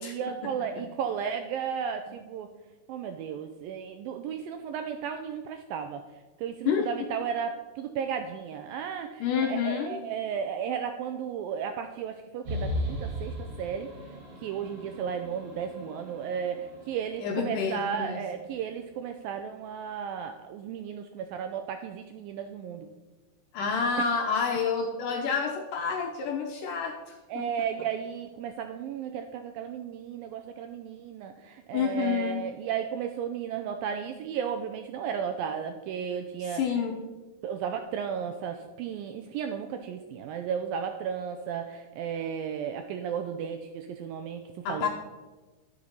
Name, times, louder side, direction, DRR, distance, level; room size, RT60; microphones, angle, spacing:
voice 1, 0.0-2.5 2.9-6.0 6.4-13.9 14.4-22.9 27.3-36.6 37.4-44.9, right 7 dB, 85° right, 6 dB, 2.1 m, -34 dB
voice 2, 9.2-10.0 17.2-18.2 23.5-27.5 31.7-32.4 36.5-37.0 44.7-44.9, left 6 dB, 75° left, 2 dB, 2.0 m, -29 dB
sound 1, 12.5-18.0, equal, 40° right, 3.3 m, -37 dB
12.5 x 6.6 x 5.5 m, 1.2 s
omnidirectional pair, 4.7 m